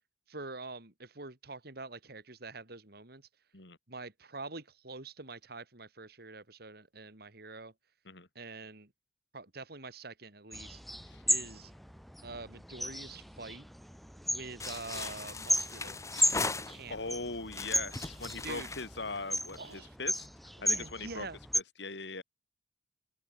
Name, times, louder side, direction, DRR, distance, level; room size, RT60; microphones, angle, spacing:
voice 1, 0.3-3.2 3.9-7.7 8.3-8.9 9.3-10.8 11.2-11.7 12.2-13.7 14.3-16.0 16.4-17.0 18.4-18.7 19.6-19.9 20.6-21.4, right 3 dB, 60° right, 3.3 m, -45 dB
sound 1, 10.5-21.6, equal, ahead, 0.6 m, -35 dB
sound 2, 14.6-17.1 17.5-19.7, left 3 dB, 15° left, 1.5 m, -39 dB
voice 2, 16.9-20.3 20.6-21.3 21.5-22.2, left 3 dB, 75° left, 3.6 m, -40 dB
head